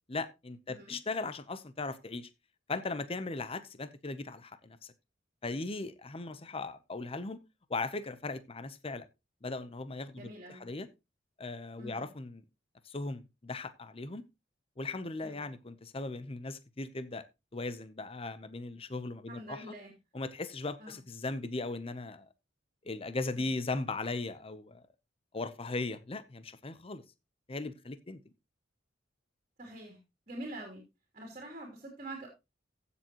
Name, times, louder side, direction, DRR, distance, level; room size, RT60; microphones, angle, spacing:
voice 1, 0.1-2.3 2.7-4.9 5.4-7.4 7.7-9.1 9.4-10.9 11.4-12.4 12.8-14.2 14.8-17.2 17.5-19.7 20.1-22.3 22.8-24.8 25.3-27.0 27.5-28.2, left 3 dB, 30° left, 0.8 m, -38 dB
voice 2, 10.2-10.6 11.8-12.1 15.2-15.4 19.3-19.9 20.8-21.0 23.3-23.5 29.6-30.0 30.3-30.8 31.1-32.3, right 1 dB, 40° right, 3.1 m, -45 dB
15.5 x 7.0 x 3.0 m
head